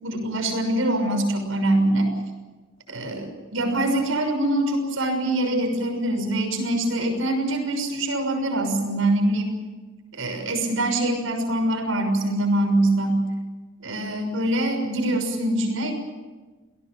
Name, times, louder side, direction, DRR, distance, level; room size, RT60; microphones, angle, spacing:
voice 1, 0.0-2.1 2.9-9.5 10.1-13.2 13.8-15.9, right 1 dB, 85° right, 4 dB, 6.3 m, -24 dB
28.0 x 18.5 x 7.2 m, 1.3 s
head